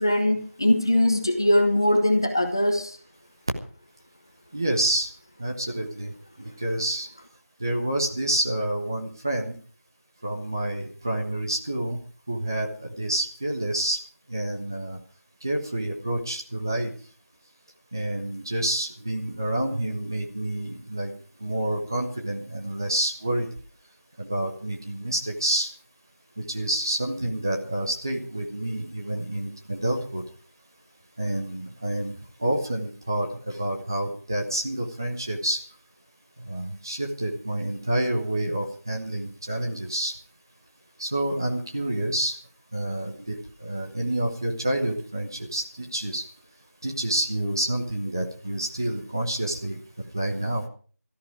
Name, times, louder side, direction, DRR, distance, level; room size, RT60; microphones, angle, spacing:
voice 1, 0.0-3.0, left 1 dB, 15° left, 4 dB, 0.9 m, -21 dB
voice 2, 4.5-5.1 5.4-6.1 6.4-7.1 7.6-9.5 10.2-12.0 12.3-12.7 13.0-14.0 14.3-15.0 15.4-16.9 17.9-21.1 21.4-23.5 24.2-25.7 26.5-30.2 31.2-32.1 32.4-35.6 36.5-40.1 41.0-42.3 42.7-46.2 46.8-49.8 50.1-50.6, right 1 dB, 15° right, 0 dB, 1.0 m, -28 dB
17.0 x 13.5 x 4.9 m, 0.43 s
figure-of-eight pair, 175°, 8 cm